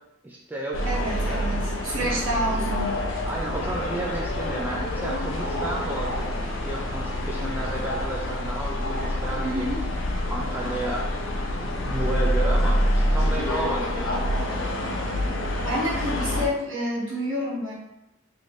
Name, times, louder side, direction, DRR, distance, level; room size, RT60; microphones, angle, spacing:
voice 1, 0.2-0.8 1.3-1.5 2.0-2.2 3.3-6.3 6.6-9.7 10.3-11.1 11.6-14.3, right 2 dB, 10° right, -2 dB, 0.4 m, -32 dB
sound 1, 0.7-16.5, left 1 dB, 75° left, 0.7 m, -27 dB
voice 2, 0.8-3.0 9.4-9.8 14.8-15.1 15.6-17.7, equal, 70° right, -4 dB, 1.3 m, -29 dB
3.2 x 3.0 x 4.0 m, 0.92 s
head